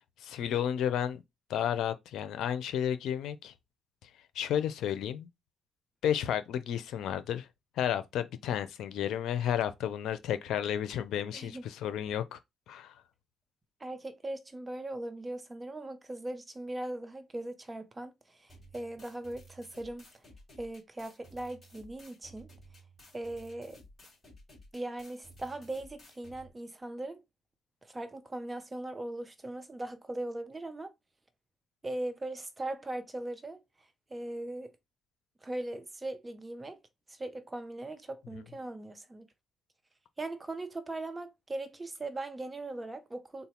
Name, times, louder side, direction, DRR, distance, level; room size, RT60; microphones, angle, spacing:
voice 1, 0.2-1.2 1.5-3.5 4.0-4.1 4.3-5.3 6.0-7.5 7.8-12.4 12.7-13.0, left 9 dB, 80° left, 0.5 m, -32 dB
voice 2, 11.3-11.7 13.8-20.0 20.6-22.5 23.1-23.8 24.7-27.2 27.8-30.9 31.8-33.6 34.1-34.7 35.4-36.8 37.1-39.3 40.2-43.5, right 2 dB, 20° right, 0.6 m, -39 dB
sound 1, 18.5-26.5, right 1 dB, 20° left, 2.2 m, -55 dB
3.9 x 2.1 x 4.3 m
cardioid pair, 90°, 0 cm